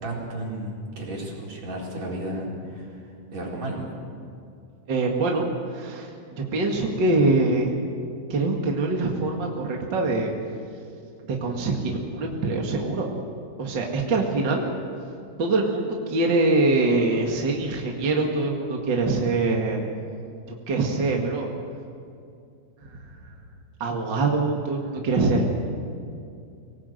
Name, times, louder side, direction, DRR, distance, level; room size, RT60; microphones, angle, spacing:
voice 1, 0.0-3.9, right 1 dB, 65° right, -3 dB, 5.5 m, -33 dB
voice 2, 4.9-7.7 8.3-10.3 11.3-13.1 13.6-14.6 15.4-19.8 20.7-21.5 22.8-23.3 23.8-25.5, right 3 dB, 40° right, 0 dB, 2.3 m, -24 dB
24.5 x 18.5 x 7.9 m, 2.5 s
omnidirectional pair, 3.4 m